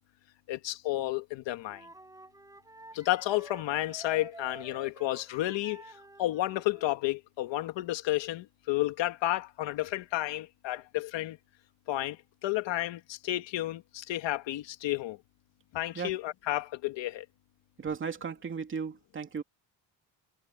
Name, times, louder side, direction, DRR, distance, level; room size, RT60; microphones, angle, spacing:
voice 1, 0.5-1.9 2.9-11.4 11.9-15.2 15.7-17.3, left 16 dB, 70° left, 1.9 m, -32 dB
Wind instrument woodwind instrument, 1.7-7.0, right 2 dB, 5° right, 7.3 m, -50 dB
voice 2, 17.8-19.4, right 6 dB, 25° right, 2.7 m, -35 dB
cardioid pair, 180°, 45 cm